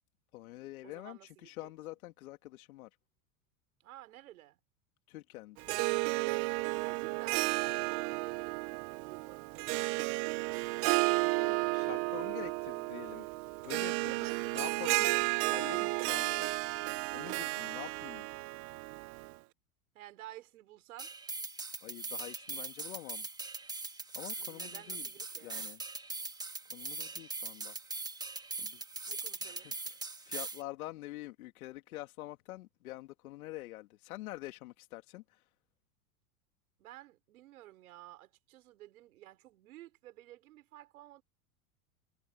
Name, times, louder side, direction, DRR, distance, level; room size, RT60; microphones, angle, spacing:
voice 1, 0.3-2.9 5.1-5.8 11.4-13.3 13.6-14.1 14.5-15.1 15.5-16.5 17.1-18.3 21.8-23.3 24.2-25.1 25.4-25.8 26.7-27.7 28.6-28.9 29.4-35.5, left 17 dB, 75° left, 2.0 m, -46 dB
voice 2, 0.8-1.7 3.8-4.6 6.6-9.5 14.0-16.1 19.9-21.1 24.4-25.6 29.1-29.7 36.8-41.2, right 15 dB, 75° right, 4.9 m, -52 dB
Harp, 5.6-19.3, right 26 dB, 35° right, 0.4 m, -33 dB
sound 1, 21.0-30.6, right 3 dB, 10° right, 1.6 m, -41 dB
hypercardioid pair, 120°, 43 cm